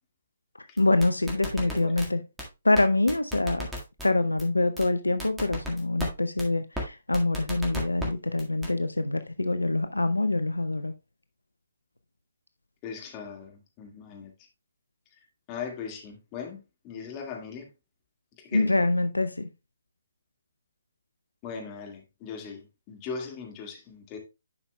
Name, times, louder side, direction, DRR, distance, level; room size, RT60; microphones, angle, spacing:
voice 1, 0.6-2.2 2.6-3.7 4.0-10.9 18.5-19.5, left 2 dB, 85° left, 0.5 m, -25 dB
sound 1, 0.8-2.1 2.4-2.5 2.8-2.9 3.1-4.1 4.4-4.5 4.8-4.9 5.2-6.1 6.4-6.5 6.8-6.9 7.1-8.1 8.4-8.7, equal, 5° right, 1.8 m, -34 dB
voice 2, 1.6-1.9 12.8-14.3 15.5-17.7 18.5-18.8 21.4-24.2, left 6 dB, 25° left, 1.8 m, -39 dB
10.5 x 5.6 x 2.2 m
figure-of-eight pair, 135°, 0 cm